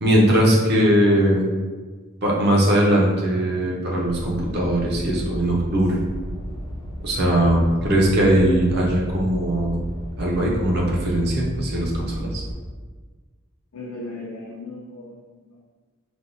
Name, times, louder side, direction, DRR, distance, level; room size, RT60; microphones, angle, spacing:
voice 1, 0.0-1.5 2.2-6.0 7.0-9.8 10.2-12.4, right 1 dB, 50° right, -3 dB, 0.7 m, -20 dB
sound 1, 4.0-12.5, right 1 dB, 25° left, 0.4 m, -33 dB
voice 2, 13.7-15.2 15.5-15.6, left 2 dB, 90° left, -3 dB, 0.5 m, -36 dB
3.3 x 2.3 x 2.6 m, 1.4 s
head